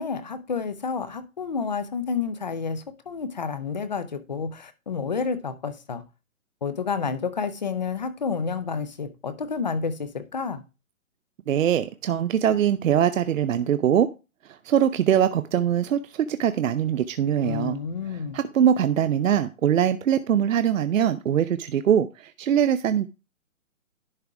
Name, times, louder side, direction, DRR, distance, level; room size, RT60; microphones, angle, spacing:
voice 1, 0.0-6.0 6.6-10.6 17.4-18.4, left 5 dB, 35° left, 0.6 m, -30 dB
voice 2, 11.5-14.1 14.6-17.8 18.1-23.1, right 9 dB, 65° right, 0.6 m, -22 dB
11.0 x 3.6 x 4.7 m
hypercardioid pair, 165°, 42 cm